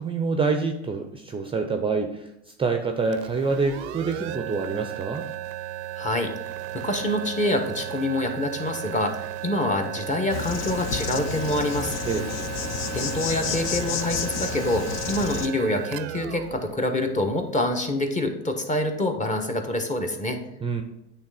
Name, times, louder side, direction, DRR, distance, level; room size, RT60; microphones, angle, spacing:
voice 1, 0.0-5.3 12.1-12.3 20.6-20.8, right 4 dB, 15° right, 5 dB, 0.5 m, -26 dB
sound 1, 3.1-17.7, right 13 dB, 75° right, 0.6 m, -35 dB
voice 2, 6.0-6.3 6.7-11.9 12.9-20.4, left 1 dB, 20° left, 4 dB, 1.1 m, -26 dB
Insect, 10.3-15.5, left 7 dB, 50° left, 0.8 m, -31 dB
8.8 x 3.3 x 4.8 m, 0.85 s
hypercardioid pair, 85°, 34 cm